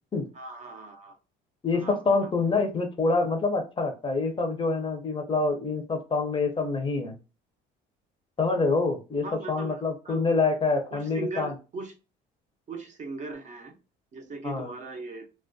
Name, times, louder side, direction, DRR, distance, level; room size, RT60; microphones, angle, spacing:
voice 1, 0.3-1.2 1.7-2.3 9.2-10.2 10.9-11.9 12.7-13.7 14.1-15.3, right 3 dB, 35° right, 0.5 m, -39 dB
voice 2, 1.6-7.1 8.4-11.5 14.4-14.7, left 3 dB, 25° left, 0.6 m, -26 dB
2.3 x 2.1 x 2.5 m
supercardioid pair, 95°, 21 cm